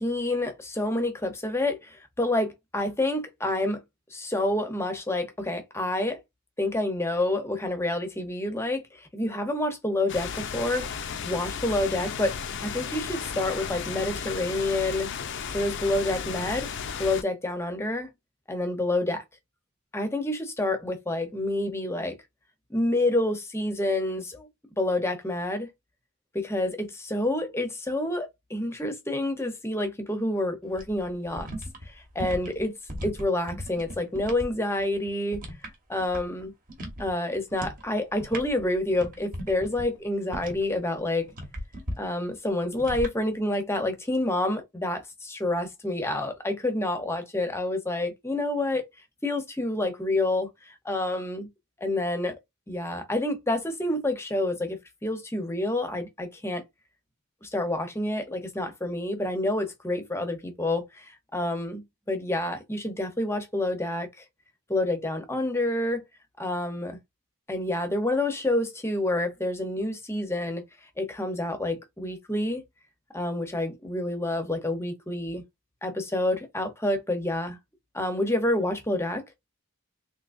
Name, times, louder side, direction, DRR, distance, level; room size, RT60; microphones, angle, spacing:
voice 1, 0.0-3.8 4.1-6.2 6.6-10.9 11.2-12.3 12.6-15.1 15.5-16.7 17.0-18.1 18.5-19.2 19.9-22.2 22.7-24.5 24.8-25.7 26.3-31.5 31.9-32.8 33.0-35.4 35.9-36.5 37.0-41.3 42.0-48.9 49.2-51.5 51.8-52.4 52.7-56.6 57.4-64.1 64.7-66.0 66.4-67.0 67.5-70.6 71.0-72.6 73.1-75.4 75.8-77.6 77.9-79.2, left 1 dB, 10° left, 0.7 m, -28 dB
sound 1, 10.1-17.2, left 6 dB, 55° left, 0.5 m, -34 dB
sound 2, 30.7-34.5 34.8-36.4 36.7-37.1 37.5-37.8 38.1-40.8 41.3-42.0 42.8-43.1, equal, 40° right, 1.0 m, -37 dB
3.6 x 2.9 x 2.5 m
head